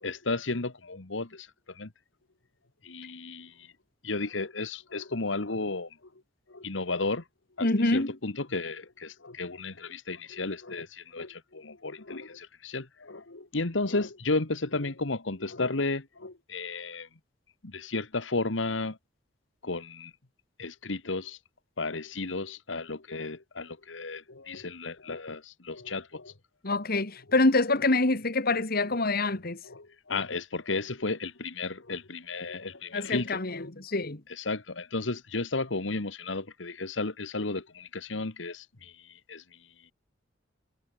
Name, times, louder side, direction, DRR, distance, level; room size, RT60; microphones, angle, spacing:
voice 1, 0.0-1.9 2.8-3.7 4.0-6.0 6.5-7.2 7.6-17.1 17.6-19.0 19.6-20.1 20.6-21.4 21.8-26.3 29.6-33.7 34.3-39.9, left 3 dB, 75° left, 1.7 m, -33 dB
voice 2, 7.6-8.2 26.6-29.6 32.9-34.2, left 2 dB, 55° left, 2.1 m, -26 dB
head